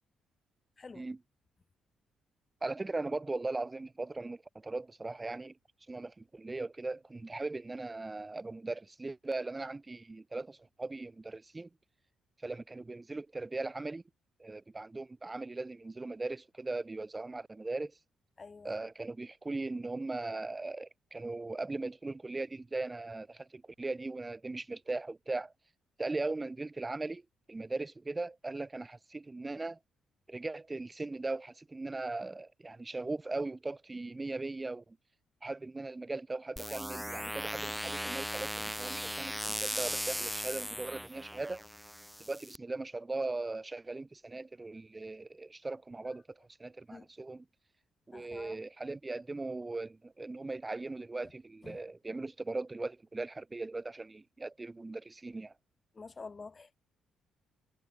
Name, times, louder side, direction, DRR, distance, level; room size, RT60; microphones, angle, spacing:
voice 1, 2.6-5.5 5.9-11.7 12.4-14.0 14.4-18.0 18.6-25.5 26.0-27.2 27.5-29.8 30.3-35.0 35.4-41.6 42.2-47.4 48.1-55.5, right 3 dB, 20° right, 4.3 m, -39 dB
voice 2, 18.4-18.8 46.9-47.1 48.1-48.6 51.6-51.8 55.9-56.8, left 4 dB, 30° left, 6.4 m, -48 dB
sound 1, 36.6-42.6, equal, ahead, 0.9 m, -38 dB
cardioid pair, 90°, 0 cm